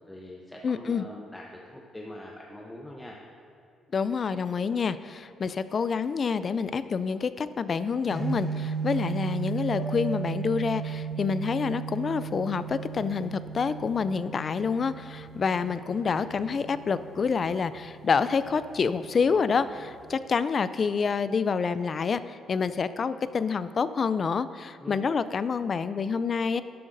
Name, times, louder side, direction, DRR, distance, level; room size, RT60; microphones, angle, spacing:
voice 1, 0.1-3.2 24.8-25.0, left 1 dB, 15° left, -1 dB, 0.8 m, -43 dB
voice 2, 0.6-1.0 3.9-26.6, left 5 dB, 45° left, 14 dB, 0.3 m, -27 dB
sound 1, 8.1-20.2, right 7 dB, 40° right, 1.9 m, -36 dB
sound 2, 9.8-14.1, left 1 dB, 65° left, 0.8 m, -45 dB
12.5 x 7.7 x 2.6 m, 2.5 s
cardioid pair, 90°, 0 cm